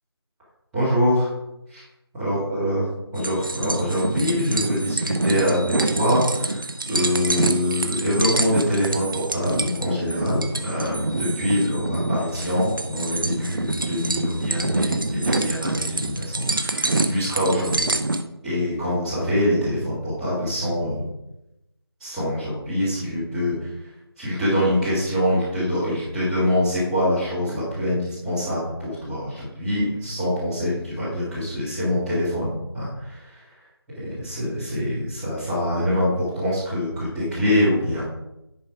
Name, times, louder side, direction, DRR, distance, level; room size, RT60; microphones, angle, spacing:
voice 1, 0.7-1.3 1.7-1.8 2.2-2.9 3.1-17.8 18.4-21.1 22.0-23.7 24.2-33.4 34.0-38.0, equal, 5° right, -13 dB, 1.8 m, -24 dB
sound 1, 3.2-18.2, right 2 dB, 55° right, 0.8 m, -26 dB
10.0 x 4.4 x 4.9 m, 0.90 s
figure-of-eight pair, 170°, 14 cm